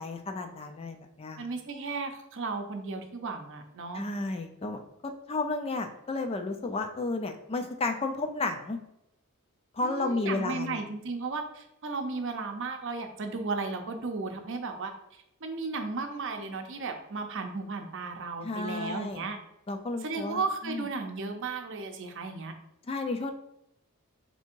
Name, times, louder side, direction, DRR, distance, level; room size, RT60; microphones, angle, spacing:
voice 1, 0.0-1.4 3.9-4.8 5.3-8.8 9.7-10.8 18.4-19.3 19.7-20.9 22.9-23.3, left 3 dB, 25° left, 6 dB, 0.4 m, -32 dB
voice 2, 1.4-4.0 9.8-14.9 15.4-19.4 20.0-22.5, right 3 dB, 60° right, 5 dB, 0.6 m, -35 dB
3.4 x 2.8 x 4.4 m, 0.81 s
head